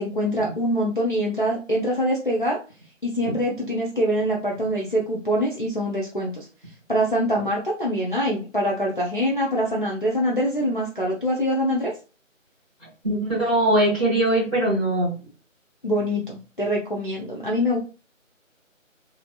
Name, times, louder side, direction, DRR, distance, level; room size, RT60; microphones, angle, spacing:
voice 1, 0.0-2.6 3.0-6.5 6.9-11.9 15.8-17.8, equal, 40° left, -3 dB, 0.5 m, -24 dB
voice 2, 13.0-15.1, right 1 dB, 5° left, -14 dB, 1.1 m, -21 dB
3.1 x 2.5 x 2.3 m, 0.33 s
figure-of-eight pair, 165°, 40 cm